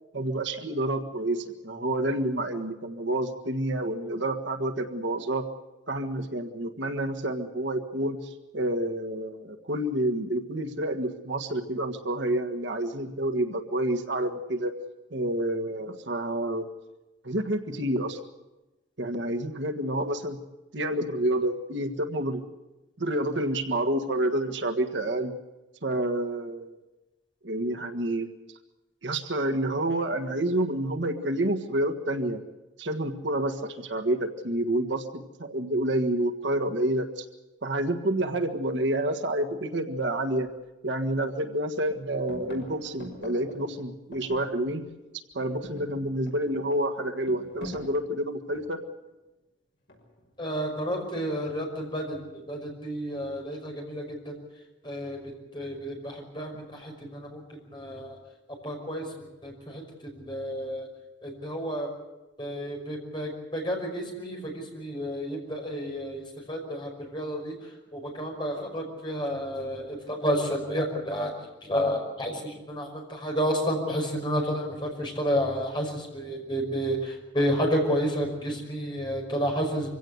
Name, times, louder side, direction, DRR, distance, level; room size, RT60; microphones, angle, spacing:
voice 1, 0.1-5.5 5.9-14.7 15.1-16.7 17.2-18.2 19.0-20.4 20.7-22.4 23.0-25.3 25.8-26.7 27.4-28.3 29.0-32.4 32.8-37.2 37.6-40.5 40.8-44.8 45.3-48.8, right 1 dB, 75° right, 7 dB, 1.6 m, -29 dB
sound 1, 40.4-40.6 41.0-41.6 41.9-45.0 45.3-48.9 49.9-50.4, left 1 dB, 60° left, 6.3 m, -45 dB
voice 2, 50.4-54.4 54.8-58.2 58.6-60.9 61.2-61.9 62.4-80.0, equal, 25° left, 1 dB, 5.6 m, -31 dB
24.5 x 16.5 x 8.1 m, 1.1 s
head